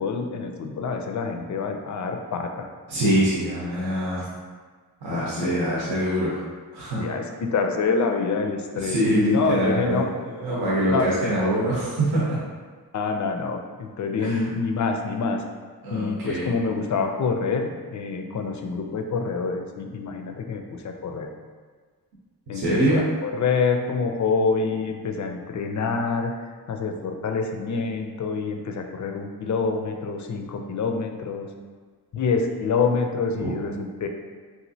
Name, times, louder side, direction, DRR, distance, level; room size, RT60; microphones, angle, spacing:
voice 1, 0.0-2.7 5.1-5.6 7.0-10.0 10.9-11.1 12.9-15.4 15.9-21.3 22.5-26.3 26.7-31.5 32.1-34.1, left 4 dB, 45° left, 4 dB, 0.4 m, -26 dB
voice 2, 2.9-4.3 5.0-6.4 6.7-7.1 8.7-12.4 14.2-14.5 15.8-16.5 22.5-23.0 33.4-33.5, right 1 dB, 75° right, -7 dB, 0.7 m, -24 dB
3.0 x 2.5 x 2.7 m, 1.5 s
cardioid pair, 50°, 40 cm